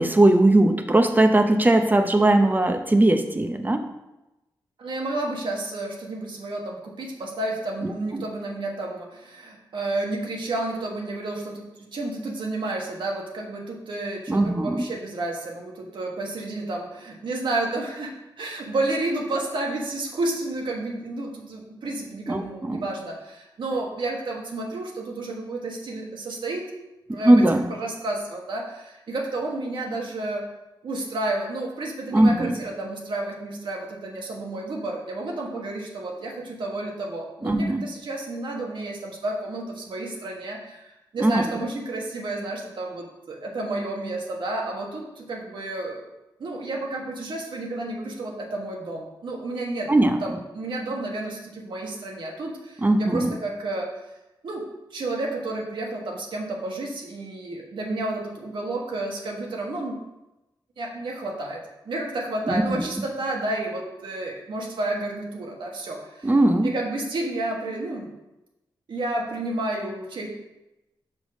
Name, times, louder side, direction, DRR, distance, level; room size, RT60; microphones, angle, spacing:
voice 1, 0.0-3.8 8.1-8.2 14.3-14.8 22.3-22.8 27.2-27.7 32.1-32.6 37.4-37.9 41.2-41.4 49.9-50.2 52.8-53.4 62.5-62.8 66.2-66.7, right 1 dB, 20° right, 7 dB, 0.7 m, -19 dB
voice 2, 4.8-26.7 27.1-27.4 27.7-30.4 30.8-46.1 46.4-49.9 50.2-53.9 54.4-54.6 54.9-60.0 60.8-66.3 66.6-68.1 68.9-70.3, right 2 dB, 80° right, 0 dB, 1.4 m, -31 dB
5.9 x 5.3 x 4.9 m, 0.97 s
wide cardioid pair, 85°, 8 cm